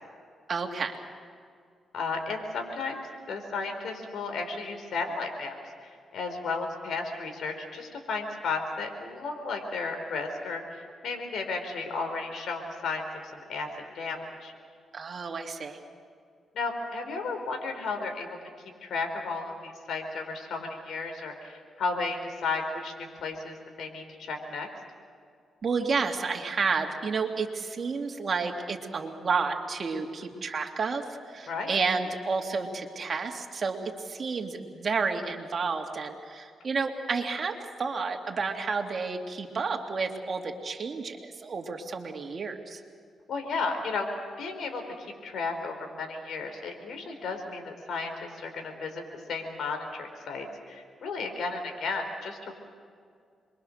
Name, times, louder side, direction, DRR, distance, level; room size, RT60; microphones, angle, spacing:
voice 1, 0.5-0.9 14.9-15.8 25.6-33.8 34.0-42.8, right 4 dB, 50° right, 3 dB, 2.7 m, -31 dB
voice 2, 1.9-3.0 3.3-5.6 5.8-13.0 13.3-13.7 13.9-14.5 16.5-18.3 18.8-24.7 31.5-31.8 43.3-44.1 44.4-49.0 49.3-52.5, left 4 dB, 75° left, 4 dB, 4.2 m, -34 dB
27.5 x 23.0 x 6.6 m, 2.2 s
cardioid pair, 80°, 0 cm